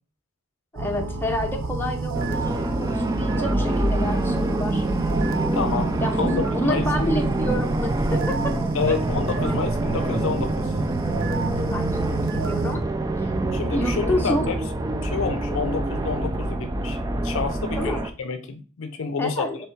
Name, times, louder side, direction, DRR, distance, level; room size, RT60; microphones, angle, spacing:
voice 1, 0.7-4.9 6.0-8.6 8.9-9.0 11.7-12.8 13.7-14.5 17.8-18.0 19.2-19.6, left 1 dB, 10° left, 1 dB, 0.7 m, -28 dB
sound 1, 0.7-12.8, right 3 dB, 70° right, 0.6 m, -31 dB
sound 2, 2.1-18.1, right 2 dB, 15° right, 0.3 m, -25 dB
voice 2, 5.5-6.3 6.6-6.9 8.7-10.7 13.5-14.6 15.0-19.5, left 5 dB, 65° left, 8 dB, 0.5 m, -29 dB
3.3 x 3.3 x 4.5 m, 0.37 s
head